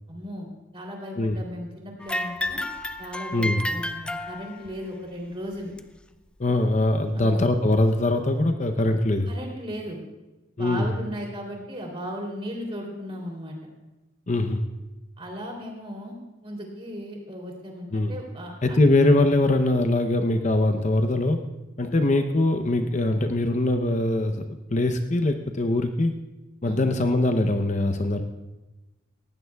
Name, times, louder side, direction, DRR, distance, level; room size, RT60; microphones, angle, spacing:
voice 1, 0.1-0.5 0.7-2.6 3.0-5.7 7.1-7.3 9.3-10.0 10.6-13.6 15.2-16.1 16.4-18.8 26.6-26.8, equal, 30° right, 0 dB, 3.0 m, -36 dB
sound 1, 2.0-4.8 5.8-5.9 6.7-6.8 7.7-7.8, left 1 dB, 5° left, 0.3 m, -31 dB
voice 2, 6.4-9.3 10.6-10.9 14.3-14.6 17.9-18.1 18.6-21.4 21.8-26.1 26.6-28.2, left 2 dB, 40° left, 7 dB, 0.7 m, -22 dB
19.0 x 16.0 x 2.3 m, 1.0 s
head